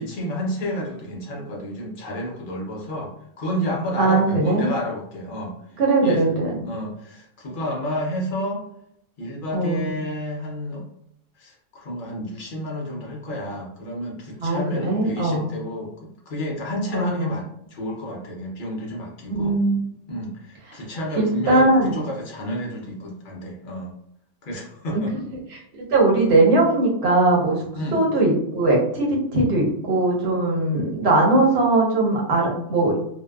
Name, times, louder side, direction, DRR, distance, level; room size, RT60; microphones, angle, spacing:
voice 1, 0.0-5.5 6.0-6.2 6.6-8.6 9.2-10.8 11.4-19.6 20.1-23.9 24.4-25.1 27.7-28.0, equal, 60° left, -2 dB, 0.5 m, -30 dB
voice 2, 4.0-4.7 5.8-6.6 9.5-9.9 14.4-15.5 16.9-17.3 19.3-19.9 21.2-22.0 25.5-27.6 27.9-33.0, right 2 dB, 55° right, -2 dB, 0.9 m, -20 dB
2.6 x 2.1 x 2.2 m, 0.71 s
omnidirectional pair, 1.5 m